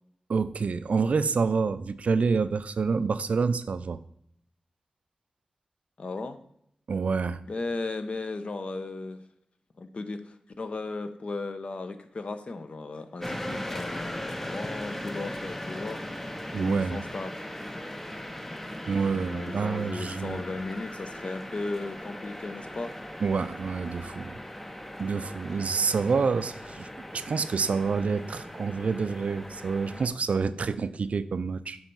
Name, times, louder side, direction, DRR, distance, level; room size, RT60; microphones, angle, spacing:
voice 1, 0.3-4.0 6.9-7.4 16.5-17.0 18.9-20.4 23.2-24.4 25.0-26.9 27.1-31.8, right 5 dB, 70° right, 13 dB, 0.4 m, -27 dB
voice 2, 6.0-6.4 7.4-9.2 9.8-16.0 16.5-17.5 19.1-22.9, left 3 dB, 55° left, 9 dB, 0.7 m, -36 dB
sound 1, 13.2-30.1, left 1 dB, 10° left, 0.6 m, -39 dB
7.2 x 3.4 x 5.4 m, 0.70 s
wide cardioid pair, 100°, 2 cm